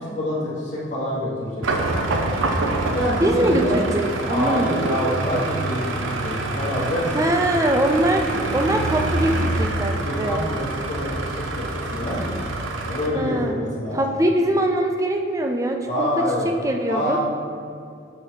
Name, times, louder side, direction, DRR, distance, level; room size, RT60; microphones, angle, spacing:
voice 1, 0.1-1.9 2.9-3.8 4.2-7.3 10.0-12.2 12.8-14.0 15.9-16.5 16.9-17.2, equal, 40° left, -12 dB, 1.2 m, -26 dB
sound 1, 1.6-13.1, right 2 dB, 85° right, 0.6 m, -26 dB
voice 2, 3.2-4.9 7.1-10.4 13.1-13.5 13.9-16.1 16.4-17.2, right 1 dB, 15° right, 4 dB, 0.4 m, -22 dB
7.5 x 3.1 x 4.3 m, 2.5 s
head